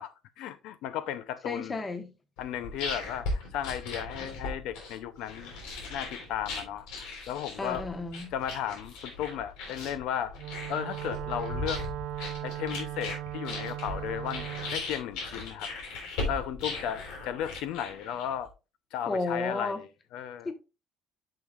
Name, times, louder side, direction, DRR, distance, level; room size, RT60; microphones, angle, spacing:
voice 1, 0.0-1.8 2.4-5.5 5.9-7.8 8.3-10.3 10.7-11.8 12.4-14.4 14.7-15.7 16.3-18.5 18.9-19.8 20.1-20.5, left 10 dB, 65° left, 0.6 m, -35 dB
voice 2, 1.4-2.1 7.6-8.3 19.1-19.8 20.4-20.5, left 3 dB, 15° left, 1.1 m, -32 dB
sound 1, 2.4-18.5, left 3 dB, 90° left, 3.8 m, -38 dB
Wind instrument woodwind instrument, 10.3-14.8, right 14 dB, 80° right, 0.9 m, -38 dB
10.0 x 6.3 x 2.4 m
cardioid pair, 170°, 0 cm